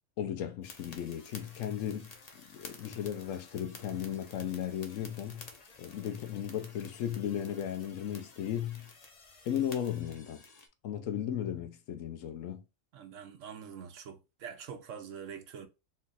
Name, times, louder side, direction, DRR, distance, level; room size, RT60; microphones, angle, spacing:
voice 1, 0.2-2.1 2.5-5.5 5.8-8.9 9.5-10.4 10.8-12.6, left 10 dB, 75° left, 1.0 m, -35 dB
sound 1, 0.6-10.7, left 3 dB, 40° left, 0.6 m, -52 dB
voice 2, 12.9-15.7, right 7 dB, 70° right, 1.0 m, -45 dB
3.8 x 2.4 x 4.0 m
omnidirectional pair, 1.4 m